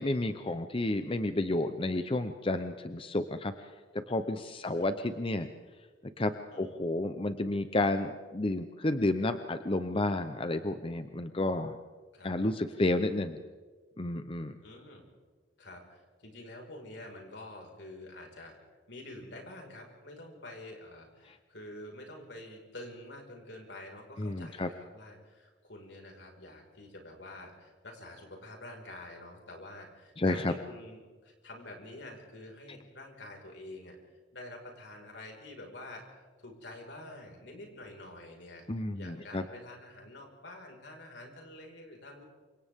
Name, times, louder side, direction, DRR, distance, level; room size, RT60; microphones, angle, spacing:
voice 1, 0.0-3.7 3.9-5.5 6.2-11.8 12.2-13.4 14.0-14.6 24.2-24.7 30.2-30.5 38.7-39.4, left 2 dB, 30° left, 9 dB, 0.8 m, -31 dB
voice 2, 14.6-15.1 15.6-18.6 18.9-34.0 34.3-38.7 38.9-42.3, left 1 dB, 80° left, 1 dB, 5.2 m, -48 dB
28.5 x 26.0 x 3.7 m, 1.5 s
head